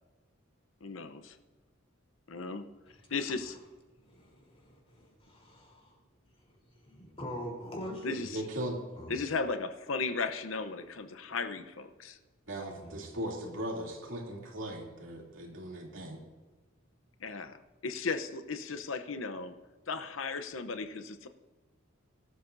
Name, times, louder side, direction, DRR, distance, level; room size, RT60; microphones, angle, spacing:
voice 1, 0.8-1.4 2.3-2.6 3.1-3.6 8.0-8.4 9.1-12.2 17.2-19.6 19.9-21.3, left 4 dB, 80° left, 9 dB, 0.8 m, -36 dB
voice 2, 4.1-5.9 6.9-8.2 9.0-9.1 12.8-13.0, equal, 30° left, 0 dB, 3.7 m, -43 dB
voice 3, 8.3-8.8 12.5-16.2, right 1 dB, 75° right, -1 dB, 2.9 m, -38 dB
20.5 x 13.0 x 2.7 m, 1.3 s
head